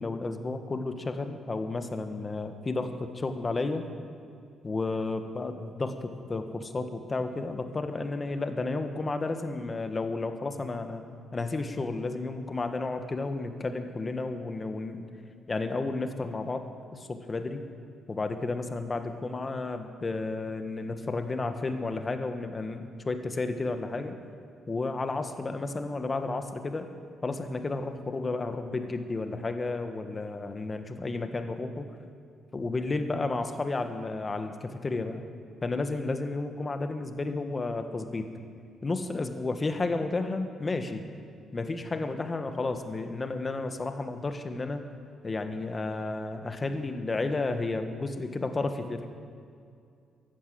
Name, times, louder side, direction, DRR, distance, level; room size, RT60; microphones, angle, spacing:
voice 1, 0.0-3.9 4.6-11.0 11.3-15.1 15.5-17.6 18.1-24.1 24.7-26.9 27.2-31.9 32.5-35.2 35.6-38.3 38.8-41.0 41.5-44.9 45.2-49.1, left 3 dB, 30° left, 7 dB, 1.4 m, -32 dB
14.5 x 11.5 x 7.8 m, 2.4 s
cardioid pair, 90°, 0 cm